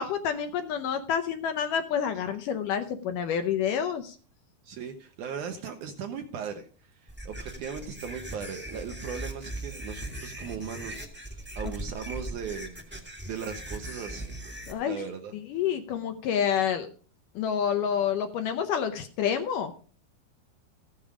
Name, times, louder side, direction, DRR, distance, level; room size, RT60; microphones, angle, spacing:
voice 1, 0.0-4.2 14.7-15.0 15.3-16.9 17.4-19.7, left 8 dB, 75° left, 2.0 m, -28 dB
voice 2, 4.6-14.4 14.9-15.3, right 6 dB, 75° right, 1.9 m, -38 dB
sound 1, 7.1-14.7, right 1 dB, 10° right, 0.7 m, -39 dB
15.0 x 7.4 x 4.9 m
omnidirectional pair, 4.4 m